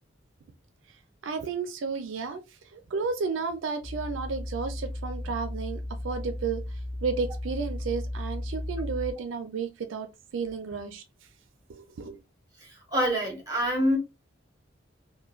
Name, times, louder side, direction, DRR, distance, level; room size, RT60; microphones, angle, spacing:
voice 1, 1.2-2.4 2.7-11.0 11.7-12.2, right 5 dB, 80° right, 0.4 m, -32 dB
sound 1, 3.8-9.1, left 1 dB, 35° left, 0.5 m, -35 dB
voice 2, 12.6-14.0, equal, 20° right, 1.3 m, -26 dB
3.0 x 2.2 x 2.4 m
head